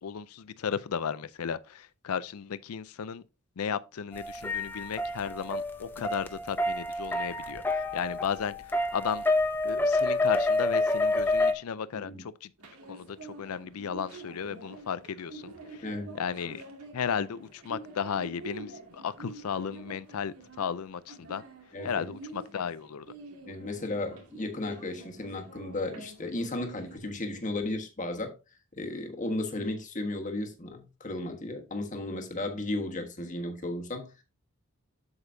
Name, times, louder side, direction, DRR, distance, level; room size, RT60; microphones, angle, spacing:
voice 1, 0.0-3.2 3.6-9.2 9.6-12.5 12.9-15.9 16.1-16.6 16.9-21.4 21.8-23.1, left 7 dB, 80° left, 0.5 m, -35 dB
sound 1, 4.1-11.5, left 2 dB, 10° left, 0.7 m, -28 dB
sound 2, 12.6-27.0, right 2 dB, 85° right, 2.3 m, -47 dB
voice 2, 15.8-16.2 21.7-22.1 23.5-28.3 28.8-34.1, left 2 dB, 35° left, 1.4 m, -34 dB
8.0 x 7.0 x 2.7 m
head